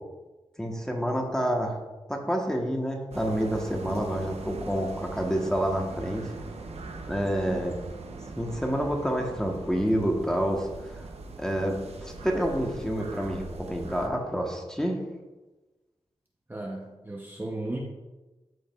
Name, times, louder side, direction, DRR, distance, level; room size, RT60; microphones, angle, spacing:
voice 1, 0.6-1.8 2.1-6.2 7.1-7.8 8.4-11.1 11.4-15.0, equal, 5° left, 1 dB, 1.1 m, -28 dB
sound 1, 3.1-14.1, right 3 dB, 80° right, 0.7 m, -41 dB
voice 2, 16.5-17.8, right 2 dB, 20° right, -1 dB, 0.7 m, -35 dB
13.0 x 4.8 x 2.4 m, 1.1 s
wide cardioid pair, 105°, 11 cm